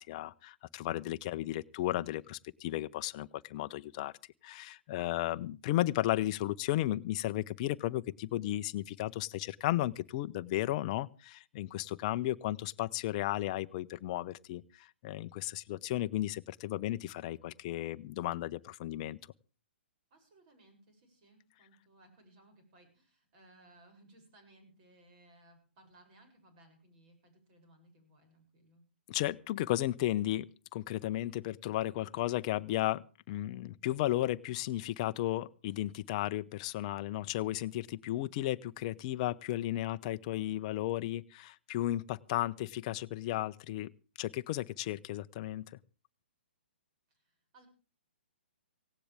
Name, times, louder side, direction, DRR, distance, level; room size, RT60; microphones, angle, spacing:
voice 1, 0.0-4.1 4.4-19.2 29.1-30.5 30.7-33.0 33.3-43.9 44.2-45.8, left 15 dB, 35° left, 14 dB, 0.7 m, -34 dB
voice 2, 20.1-28.8 47.1-47.7, right 1 dB, 40° right, 5 dB, 7.3 m, -62 dB
18.0 x 17.0 x 3.5 m, 0.35 s
figure-of-eight pair, 125°, 6 cm